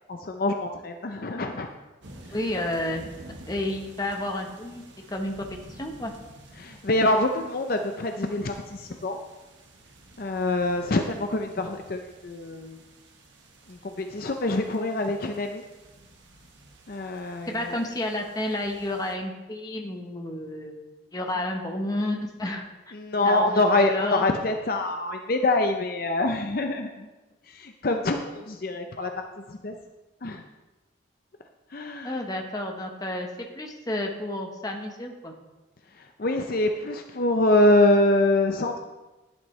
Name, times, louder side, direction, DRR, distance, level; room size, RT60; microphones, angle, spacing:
voice 1, 0.1-1.7 6.6-9.2 10.2-12.8 13.7-15.6 16.9-17.8 22.9-27.1 27.4-29.8 30.2-30.4 31.7-32.2 35.9-38.8, left 2 dB, 50° left, 5 dB, 0.6 m, -25 dB
sound 1, 2.0-19.1, right 1 dB, 75° right, 1.4 m, -50 dB
voice 2, 2.3-3.0 3.5-4.8 5.1-6.1 17.5-20.7 21.1-22.6 23.2-23.4 23.9-24.2 32.0-33.3 33.5-35.3, left 1 dB, 20° left, 2 dB, 1.0 m, -30 dB
11.0 x 10.5 x 3.2 m, 1.1 s
head